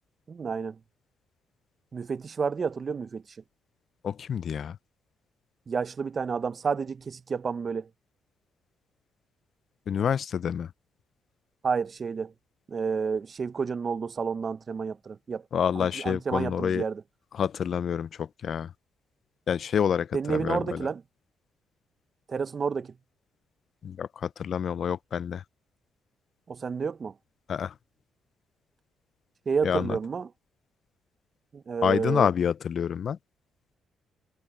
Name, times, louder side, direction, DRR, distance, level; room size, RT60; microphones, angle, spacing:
voice 1, 0.3-0.8 1.9-3.2 5.7-7.9 11.6-12.3 12.7-15.4 15.8-17.0 20.1-21.0 22.3-22.9 26.5-27.1 29.5-30.3 31.5-32.3, right 5 dB, 40° right, 0.8 m, -30 dB
voice 2, 4.0-4.8 9.9-10.7 15.5-16.8 17.3-18.7 19.5-20.9 23.8-25.4 27.5-27.7 29.6-30.0 31.8-33.2, left 8 dB, 55° left, 0.5 m, -28 dB
cardioid pair, 90°, 0 cm